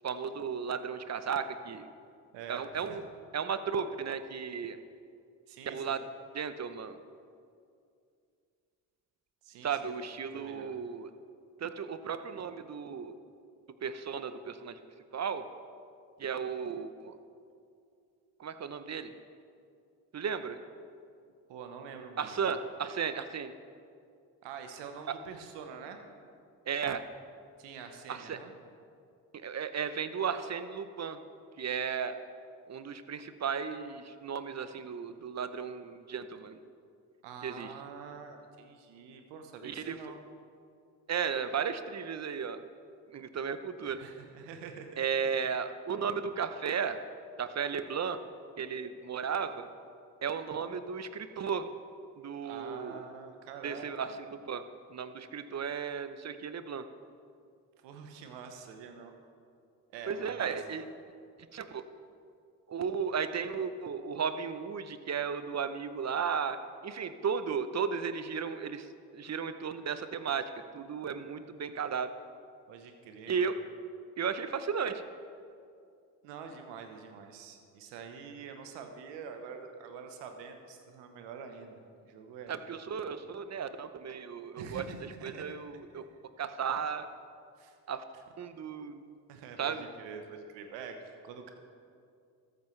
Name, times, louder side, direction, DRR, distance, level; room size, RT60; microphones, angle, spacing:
voice 1, 0.0-1.9 2.5-3.0 3.3-4.8 5.7-6.0 6.3-7.0 9.6-11.1 11.6-13.1 13.8-14.8 15.1-15.4 16.2-17.2 18.4-19.1 20.1-20.6 22.2-23.5 26.7-27.0 28.1-28.4 29.3-31.2 31.6-32.2 32.7-36.6 37.4-37.7 39.6-40.1 41.1-42.6 43.1-44.0 45.0-47.0 47.4-48.2 48.6-49.7 50.2-51.7 52.2-53.0 53.6-54.6 54.9-56.8 60.1-60.8 61.5-61.8 62.7-66.6 66.8-72.1 73.3-73.5 74.2-75.0 82.5-86.0 86.4-87.1 87.9-88.0 88.4-89.1 89.6-89.9, right 6 dB, 40° right, 11 dB, 0.8 m, -35 dB
voice 2, 2.3-3.0 5.5-6.0 9.4-9.9 10.3-10.7 21.5-22.4 24.4-26.0 27.6-28.5 37.2-40.2 44.0-45.3 52.4-54.2 57.8-59.1 59.9-60.5 72.7-73.5 76.2-82.7 83.0-83.2 84.6-85.4 87.6-87.7 89.3-91.5, right 6 dB, 85° right, 6 dB, 1.0 m, -46 dB
13.5 x 9.0 x 3.2 m, 2.4 s
hypercardioid pair, 50°, 42 cm